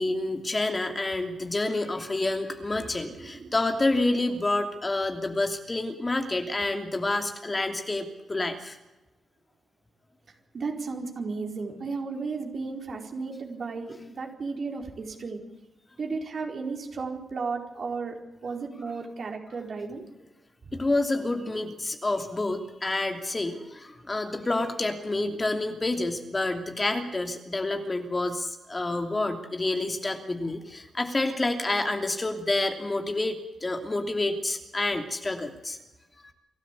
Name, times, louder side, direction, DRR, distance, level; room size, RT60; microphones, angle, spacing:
voice 1, 0.0-8.8 20.7-35.8 36.2-36.3, left 2 dB, 25° left, 5 dB, 2.9 m, -28 dB
voice 2, 2.7-3.6 3.9-4.0 10.5-15.4 16.0-18.1 18.4-20.1, right 4 dB, 55° right, 2 dB, 4.5 m, -34 dB
28.0 x 12.5 x 8.4 m, 1.0 s
cardioid pair, 75°, 0 cm